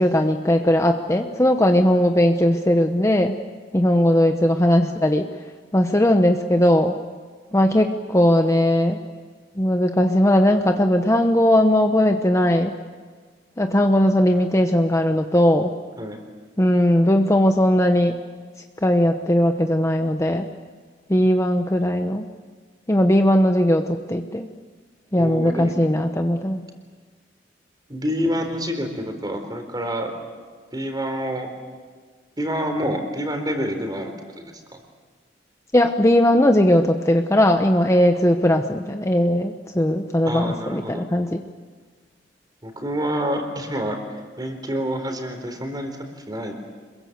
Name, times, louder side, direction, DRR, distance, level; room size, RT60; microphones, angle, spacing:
voice 1, 0.0-3.4 3.7-5.3 5.7-7.0 7.5-9.0 9.6-12.8 13.6-15.7 16.6-18.2 18.8-20.5 21.1-22.3 22.9-24.5 25.1-26.6 35.7-41.4, left 1 dB, 15° left, 5 dB, 1.0 m, -18 dB
voice 2, 25.2-25.8 27.9-30.2 30.7-31.5 32.4-34.8 40.2-41.0 42.6-46.5, equal, 25° right, 5 dB, 4.0 m, -28 dB
27.0 x 22.5 x 8.0 m, 1.5 s
head